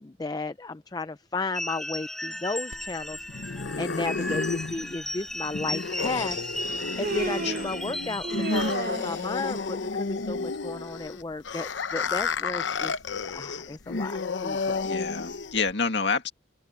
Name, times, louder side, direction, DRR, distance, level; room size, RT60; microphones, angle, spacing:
voice 1, 0.0-6.6 7.0-13.0 13.3-14.9, left 3 dB, 20° left, 0.4 m, -34 dB
sound 1, 1.5-8.7, left 1 dB, ahead, 7.4 m, -35 dB
sound 2, 2.7-15.7, left 4 dB, 90° left, 0.8 m, -31 dB
Human voice, 5.2-5.3 6.6-7.8 8.2-9.2, right 3 dB, 55° right, 0.6 m, -33 dB
voice 2, 7.4-7.7 14.8-16.3, left 4 dB, 70° left, 2.0 m, -28 dB
open air
head